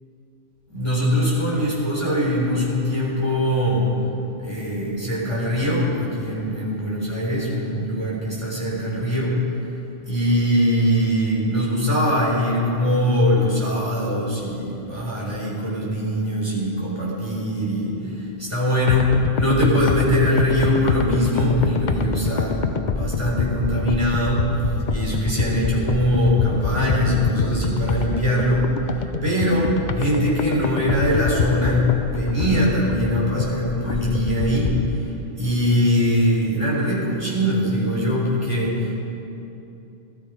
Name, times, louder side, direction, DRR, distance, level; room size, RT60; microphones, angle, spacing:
voice 1, 0.7-3.9 4.4-9.4 10.1-24.5 24.9-28.7 28.9-34.8 35.4-39.0, equal, 30° right, -6 dB, 4.1 m, -22 dB
sound 1, 18.9-34.9, left 5 dB, 50° left, 0.7 m, -26 dB
18.0 x 13.0 x 5.0 m, 2.9 s
omnidirectional pair, 1.1 m